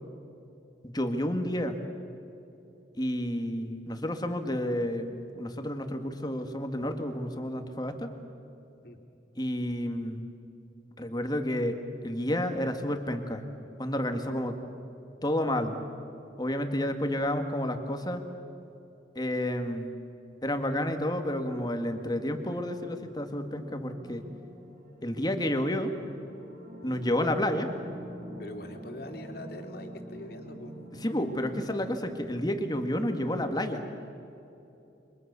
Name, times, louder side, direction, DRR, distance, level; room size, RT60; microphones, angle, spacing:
voice 1, 0.8-1.8 2.9-8.1 9.4-10.2 11.0-13.4 13.8-14.6 15.2-15.8 16.4-18.2 19.2-19.9 20.4-24.3 25.0-25.9 26.8-27.7 31.0-33.8, left 1 dB, 20° left, 6 dB, 1.9 m, -30 dB
sound 1, 23.4-33.5, equal, 45° right, 4.3 m, -46 dB
voice 2, 28.4-30.7, left 1 dB, 55° left, 3 dB, 3.1 m, -43 dB
29.5 x 25.5 x 6.9 m, 2.9 s
head